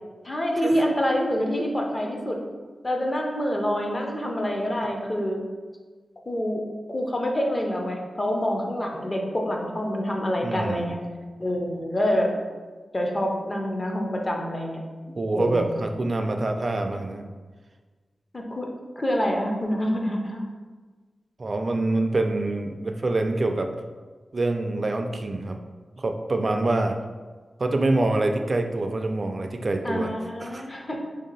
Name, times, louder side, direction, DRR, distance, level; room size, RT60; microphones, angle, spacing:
voice 1, 0.2-2.4 2.8-5.4 6.3-6.6 6.9-11.0 11.4-12.3 12.9-14.8 15.3-15.7 18.3-18.7 19.0-20.4 29.8-31.0, equal, 25° left, 1 dB, 0.5 m, -26 dB
voice 2, 10.4-10.9 15.1-17.3 21.4-23.7 24.3-25.6 26.0-27.0 27.6-30.1 30.4-30.7, right 2 dB, 40° right, 5 dB, 0.3 m, -25 dB
3.4 x 2.7 x 3.9 m, 1.4 s
wide cardioid pair, 120°, 0 cm